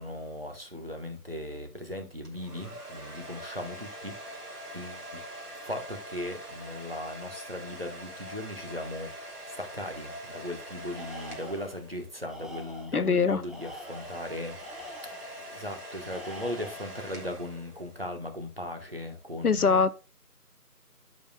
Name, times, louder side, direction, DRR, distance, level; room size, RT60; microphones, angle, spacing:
voice 1, 0.0-5.2 5.6-14.6 14.8-19.8, left 1 dB, 35° right, 1.2 m, -38 dB
sound 1, 2.2-12.4 13.4-18.2, right 1 dB, 70° right, 3.1 m, -44 dB
Tools, 10.9-11.8 12.2-13.1 13.4-15.4 16.0-17.0, equal, ahead, 0.6 m, -45 dB
voice 2, 12.9-13.4 19.4-19.9, left 5 dB, 65° left, 0.7 m, -23 dB
14.0 x 5.3 x 2.2 m
figure-of-eight pair, 180°, 48 cm